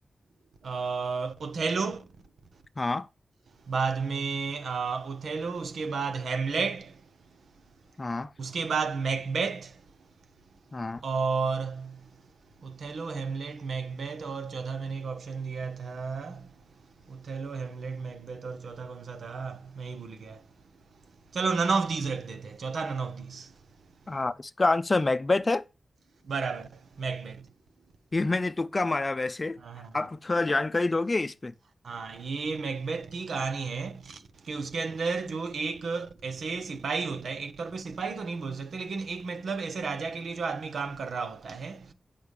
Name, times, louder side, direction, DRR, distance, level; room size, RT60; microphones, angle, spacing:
voice 1, 0.6-2.1 3.6-7.1 7.4-7.5 8.4-9.9 11.0-12.2 12.6-16.6 17.1-20.5 21.3-23.6 26.2-27.5 29.6-29.9 31.8-41.9, right 4 dB, 90° right, 1.1 m, -32 dB
voice 2, 2.8-3.1 8.0-8.3 10.7-11.0 24.1-25.6 28.1-29.6 29.9-31.5, left 3 dB, 30° left, 0.5 m, -27 dB
8.4 x 5.9 x 5.0 m
wide cardioid pair, 120°, 0 cm